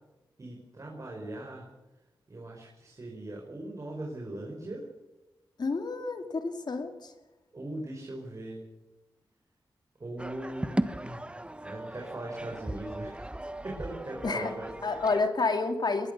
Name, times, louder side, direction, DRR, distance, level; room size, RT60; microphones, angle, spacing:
voice 1, 0.4-1.7 2.3-4.9 7.5-8.6 10.0-11.3 11.6-13.3 13.6-15.0, right 1 dB, 40° right, -1 dB, 5.2 m, -40 dB
voice 2, 5.6-7.1 14.2-14.5 14.8-16.1, left 3 dB, 55° left, 6 dB, 2.8 m, -29 dB
sound 1, 10.2-15.3, right 1 dB, 15° right, 1.1 m, -36 dB
23.0 x 20.5 x 6.9 m, 1.0 s
cardioid pair, 70°, 9 cm